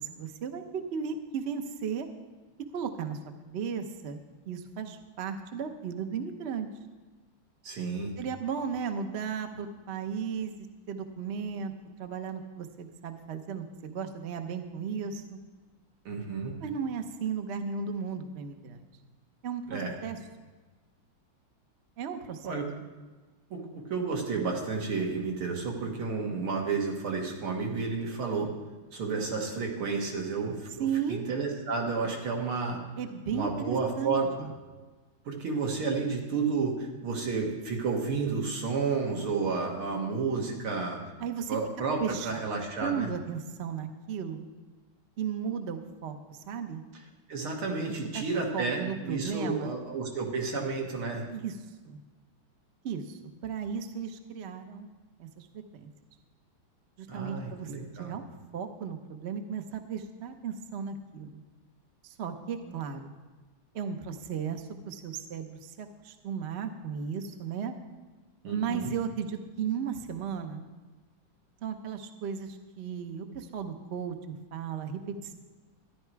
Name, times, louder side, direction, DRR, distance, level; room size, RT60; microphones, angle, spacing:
voice 1, 0.0-2.1 2.7-6.7 8.2-15.4 16.6-18.8 19.4-20.2 22.0-22.6 30.8-31.2 33.0-34.5 41.2-41.6 42.0-42.3 42.8-44.4 45.2-46.8 47.9-48.2 48.5-49.7 51.3-51.6 51.9-52.0 52.8-54.9 55.2-55.9 57.0-57.7 58.0-58.2 58.5-61.4 62.0-63.1 63.7-67.7 68.5-70.6 71.6-75.3, right 7 dB, 55° right, 6 dB, 0.7 m, -35 dB
voice 2, 7.6-8.1 16.1-16.5 19.7-20.0 22.4-22.7 23.5-28.5 28.9-32.8 33.3-34.5 35.3-41.0 41.5-43.1 47.3-51.3 57.1-58.1 68.4-68.9, right 4 dB, 85° right, 0 dB, 2.7 m, -31 dB
13.5 x 11.0 x 4.7 m, 1.3 s
omnidirectional pair, 2.3 m